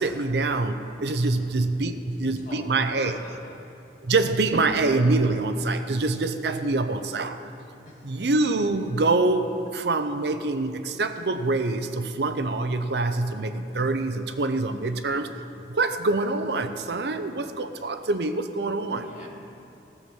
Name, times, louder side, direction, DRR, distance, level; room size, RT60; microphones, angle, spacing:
voice 1, 0.0-3.2 4.0-7.5 8.0-19.3, right 3 dB, 70° right, 9 dB, 0.6 m, -25 dB
voice 2, 1.4-1.7 2.3-3.5 7.9-8.3 18.8-19.3, left 1 dB, 45° left, -3 dB, 2.2 m, -44 dB
14.5 x 7.2 x 6.1 m, 2.8 s
head